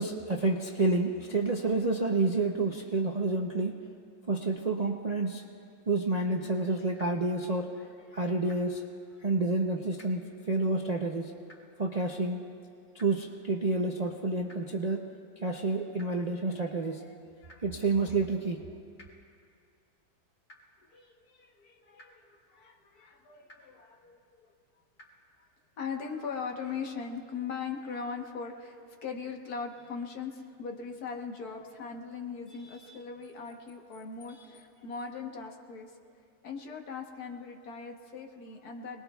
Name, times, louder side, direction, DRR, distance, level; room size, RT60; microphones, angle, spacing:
voice 1, 0.0-3.8 4.3-5.4 5.9-7.7 8.1-8.8 9.2-11.3 11.8-12.4 12.9-15.1 15.4-17.0 17.6-18.6, right 3 dB, 45° right, 1 dB, 0.5 m, -29 dB
voice 2, 6.6-6.9 7.5-8.5 13.5-13.7 16.0-17.8 18.7-18.8 20.9-24.5 25.8-36.0 36.4-39.0, left 5 dB, 70° left, 2 dB, 1.7 m, -41 dB
sound 1, 7.0-7.1 8.5-8.6 10.0-10.1 11.5-11.6 13.0-13.1 14.5-14.6 16.0-16.1 17.5-17.6 19.0-19.1 20.5-20.6 22.0-22.1 23.5-23.6 25.0-25.1, left 1 dB, 55° left, 3.3 m, -52 dB
26.0 x 20.5 x 2.3 m, 2.3 s
omnidirectional pair, 1.7 m